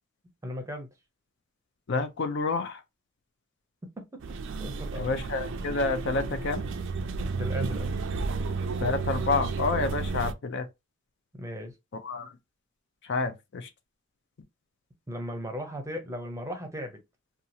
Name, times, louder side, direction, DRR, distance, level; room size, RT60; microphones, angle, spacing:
voice 1, 0.4-0.9 4.0-4.2 4.6-5.0 7.2-7.9 11.4-11.7 15.1-17.0, equal, 15° right, 0.6 m, -36 dB
voice 2, 1.9-2.8 5.0-6.6 8.8-10.7 12.0-12.3 13.1-13.7, left 3 dB, 55° left, 0.5 m, -29 dB
sound 1, 4.2-10.3, right 4 dB, 60° right, 0.4 m, -32 dB
2.8 x 2.3 x 2.6 m
head